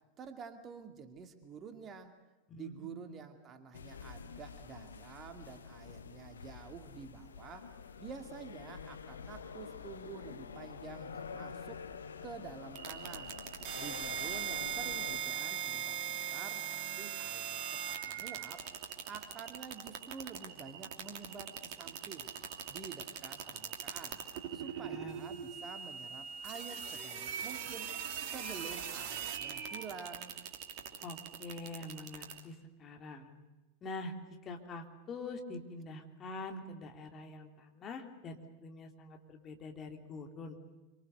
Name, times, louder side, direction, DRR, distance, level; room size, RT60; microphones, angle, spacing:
voice 1, 0.2-2.1 2.5-7.7 8.0-11.8 12.2-13.3 13.8-18.6 19.1-22.3 22.7-24.2 24.5-27.9 28.2-30.4, right 6 dB, 25° right, 7 dB, 2.4 m, -49 dB
voice 2, 2.5-3.2 24.6-25.2 31.0-33.3 33.8-34.1 34.4-40.6, left 3 dB, 25° left, 3 dB, 3.4 m, -45 dB
sound 1, 3.7-15.2, left 6 dB, 70° left, 1.3 m, -48 dB
sound 2, 12.8-32.4, right 8 dB, 45° right, 2.8 m, -41 dB
26.5 x 25.5 x 6.8 m, 1.1 s
figure-of-eight pair, 90°, 0 cm